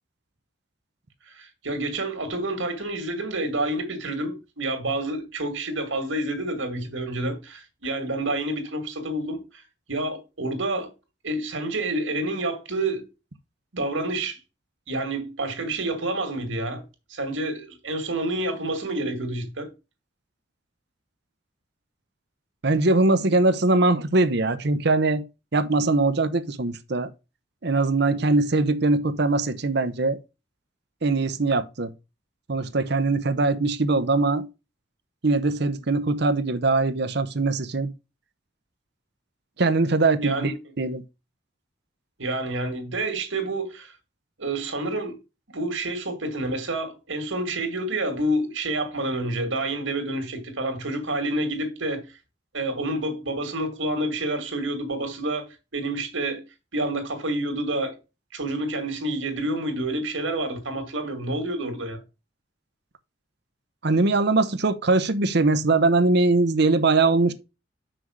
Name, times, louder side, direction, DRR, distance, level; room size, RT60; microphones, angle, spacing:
voice 1, 1.3-9.6 9.9-10.9 11.2-13.0 13.7-14.4 14.9-16.8 17.1-19.7 40.2-40.5 42.2-43.9 44.4-45.2 45.5-52.0 52.5-55.5 55.7-56.4 56.7-57.9 58.3-62.0, right 2 dB, 90° right, 2.4 m, -28 dB
voice 2, 22.6-25.2 25.5-27.1 27.6-30.2 31.0-31.9 32.5-34.5 35.2-37.9 39.6-41.0 63.8-67.3, right 3 dB, 60° right, 0.9 m, -21 dB
6.1 x 4.6 x 6.4 m
head